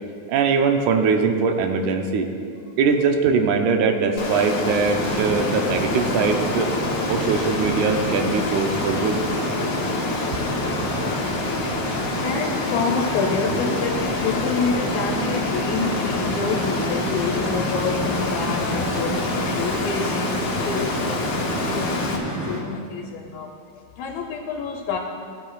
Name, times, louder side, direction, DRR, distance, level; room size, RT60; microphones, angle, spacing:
voice 1, 0.3-2.3 2.8-6.7 7.1-9.2 10.7-10.9, right 5 dB, 85° right, 4 dB, 2.1 m, -21 dB
Water, 4.2-22.2, left 3 dB, 60° left, 1.2 m, -27 dB
sound 1, 4.8-22.6, right 2 dB, 40° right, 2.3 m, -30 dB
voice 2, 12.2-25.0, left 5 dB, 80° left, 1 dB, 1.9 m, -28 dB
16.5 x 7.4 x 2.3 m, 2.3 s
omnidirectional pair, 3.4 m